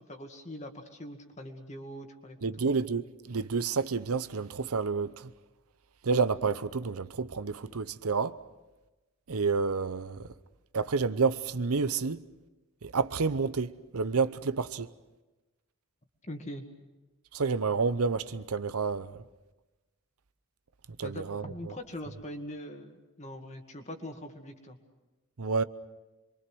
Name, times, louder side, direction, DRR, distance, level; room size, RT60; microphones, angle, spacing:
voice 1, 0.1-2.7 16.2-16.6 21.0-24.8, left 1 dB, 30° left, 2.1 m, -42 dB
voice 2, 2.4-5.3 6.0-8.4 9.3-10.3 10.7-12.2 12.8-14.9 17.3-19.2 21.0-21.7 25.4-25.6, right 4 dB, 80° right, 0.8 m, -29 dB
27.0 x 23.5 x 6.3 m
head